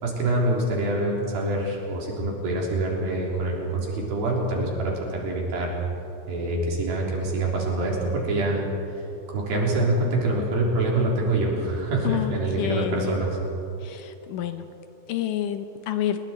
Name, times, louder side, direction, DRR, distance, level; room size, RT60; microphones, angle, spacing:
voice 1, 0.0-5.7 6.3-8.7 9.3-13.4, right 2 dB, 80° right, -2 dB, 5.5 m, -25 dB
voice 2, 12.6-13.1 13.9-14.0 14.3-14.6 15.1-16.2, left 11 dB, 75° left, 9 dB, 2.3 m, -28 dB
29.0 x 21.0 x 4.4 m, 2.9 s
omnidirectional pair, 4.2 m